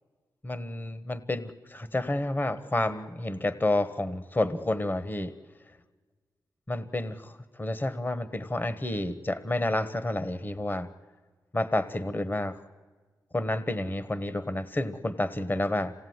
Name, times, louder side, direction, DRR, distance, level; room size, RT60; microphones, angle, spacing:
voice 1, 0.4-5.3 6.7-10.9 11.5-12.6 13.3-15.9, left 1 dB, 25° left, 14 dB, 1.2 m, -30 dB
26.5 x 17.5 x 9.5 m, 1.4 s
cardioid pair, 70°, 7 cm